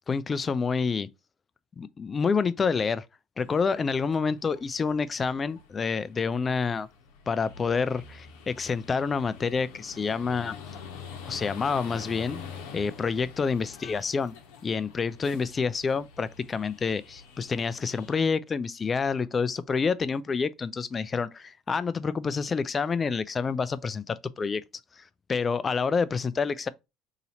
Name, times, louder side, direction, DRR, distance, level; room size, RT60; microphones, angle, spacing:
voice 1, 0.1-1.1 1.8-3.0 3.4-6.9 7.3-10.6 11.2-12.4 12.7-14.3 14.6-24.6 25.0-25.1 25.3-26.7, left 5 dB, 30° left, 0.3 m, -28 dB
sound 1, 3.4-18.2, left 6 dB, 80° left, 0.8 m, -46 dB
2.9 x 2.7 x 4.0 m
supercardioid pair, 80°, 0 cm